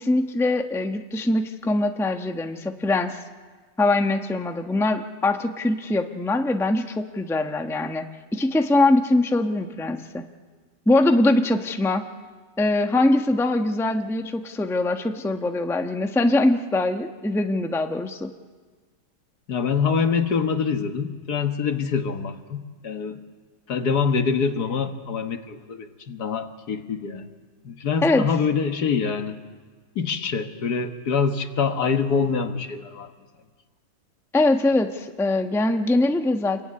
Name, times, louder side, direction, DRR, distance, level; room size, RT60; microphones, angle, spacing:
voice 1, 0.0-3.2 3.8-8.0 8.3-10.2 10.9-12.1 12.6-18.3 28.0-28.3 34.3-36.6, left 2 dB, ahead, 5 dB, 0.9 m, -22 dB
voice 2, 19.5-23.2 23.7-27.3 27.6-29.4 30.0-33.1, left 5 dB, 65° left, 7 dB, 1.9 m, -25 dB
27.0 x 22.5 x 9.8 m, 1.4 s
omnidirectional pair, 1.8 m